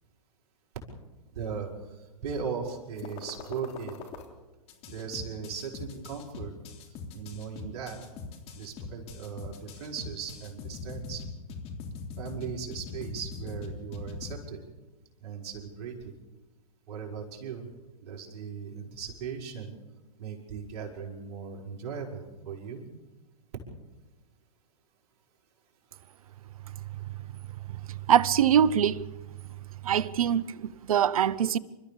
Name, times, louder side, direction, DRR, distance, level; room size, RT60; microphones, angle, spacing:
voice 1, 1.3-1.7 2.2-4.0 4.9-6.5 7.1-8.0 8.5-11.3 12.2-14.6 15.2-16.1 16.9-17.7 18.0-19.7 20.2-22.8, right 6 dB, 50° right, 6.2 m, -38 dB
sound 1, 3.0-4.2 4.7-14.3, left 6 dB, 35° left, 3.4 m, -41 dB
voice 2, 28.1-29.0 29.8-31.6, right 9 dB, 70° right, 0.9 m, -23 dB
28.5 x 14.0 x 7.2 m
hypercardioid pair, 120°, 19 cm